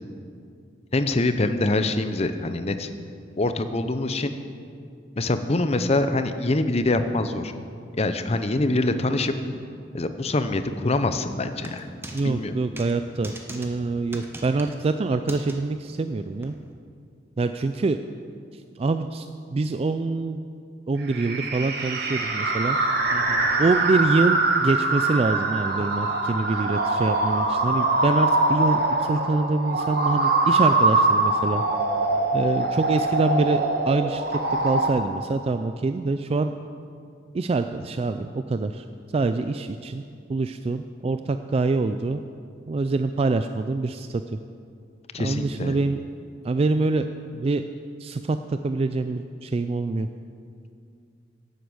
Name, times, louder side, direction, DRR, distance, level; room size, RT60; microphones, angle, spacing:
voice 1, 0.9-2.9 3.4-4.3 5.2-7.5 8.0-9.3 9.9-11.9 12.2-12.5 23.1-23.5 45.1-45.8, left 2 dB, 35° left, 9 dB, 0.7 m, -24 dB
sound 1, 11.6-12.2 12.8-12.9 13.2-13.7 14.1-14.8 15.3-15.5 16.4-16.5, right 1 dB, 10° right, 1.0 m, -39 dB
voice 2, 12.1-16.5 17.4-18.0 18.5-19.3 19.5-20.4 20.9-22.8 23.6-31.6 32.3-36.5 37.3-38.8 39.1-40.0 40.3-42.2 42.7-44.2 45.2-46.0 46.4-47.1 47.3-47.6 48.0-50.1, right 3 dB, 30° right, 9 dB, 0.3 m, -25 dB
sound 2, 21.1-34.9, right 2 dB, 55° right, 1.4 m, -23 dB
11.5 x 8.0 x 8.0 m, 2.4 s
head